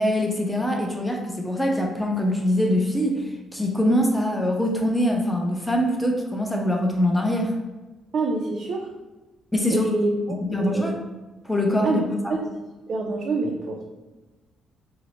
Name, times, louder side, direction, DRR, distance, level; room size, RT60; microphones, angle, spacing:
voice 1, 0.0-3.2 3.5-7.5 9.5-9.9 10.5-11.0 11.4-12.3, left 1 dB, 5° left, 1 dB, 0.6 m, -23 dB
voice 2, 8.1-8.9 9.7-10.9 11.8-12.0 12.3-12.5 12.9-13.8, right 3 dB, 60° right, 0 dB, 0.4 m, -26 dB
3.0 x 2.0 x 4.0 m, 1.2 s
cardioid pair, 90°, 0 cm